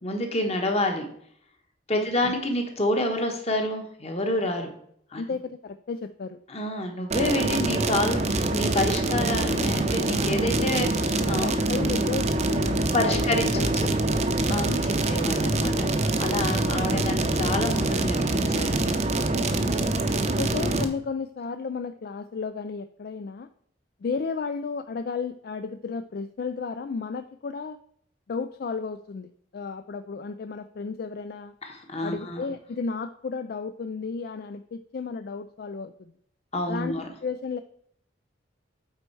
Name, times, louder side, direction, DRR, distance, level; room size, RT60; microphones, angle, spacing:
voice 1, 0.0-1.1 1.9-4.7 5.1-5.2 6.5-11.5 12.9-13.9 14.5-15.9 16.2-18.8 31.6-32.5 36.5-37.1, left 1 dB, 35° left, 4 dB, 1.2 m, -28 dB
voice 2, 2.0-2.3 5.1-6.4 11.3-13.2 13.5-13.7 14.1-14.6 16.8-17.0 19.6-20.0 20.4-23.5 24.0-27.8 28.3-31.5 32.0-36.1 36.7-37.6, left 4 dB, 50° left, 10 dB, 0.3 m, -33 dB
sound 1, 7.1-20.9, right 2 dB, 35° right, 0.6 m, -25 dB
8.3 x 4.4 x 4.6 m, 0.66 s
head